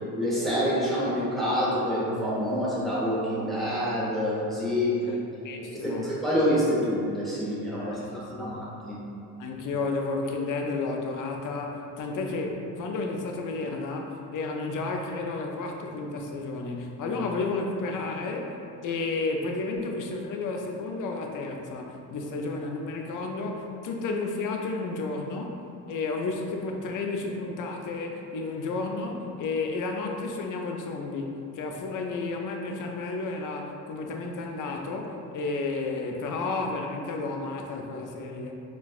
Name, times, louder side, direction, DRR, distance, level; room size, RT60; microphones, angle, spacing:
voice 1, 0.2-4.9 5.7-7.8 8.1-8.6 8.9-9.0, equal, ahead, -9 dB, 0.9 m, -27 dB
voice 2, 5.4-6.1 7.8-8.6 9.4-18.5 18.8-25.5 25.9-31.3 31.5-38.5, left 3 dB, 50° left, 2 dB, 0.5 m, -32 dB
4.0 x 2.3 x 2.4 m, 2.6 s
cardioid pair, 105°, 41 cm